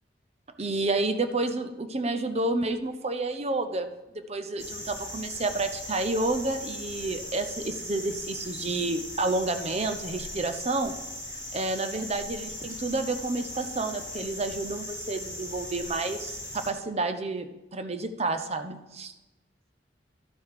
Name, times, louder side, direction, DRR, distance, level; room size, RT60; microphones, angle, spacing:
voice 1, 0.6-10.9 11.5-19.1, right 2 dB, 35° right, 8 dB, 0.7 m, -30 dB
sound 1, 4.6-16.7, left 1 dB, 20° right, 1.9 m, -39 dB
12.0 x 5.4 x 4.8 m, 1.0 s
head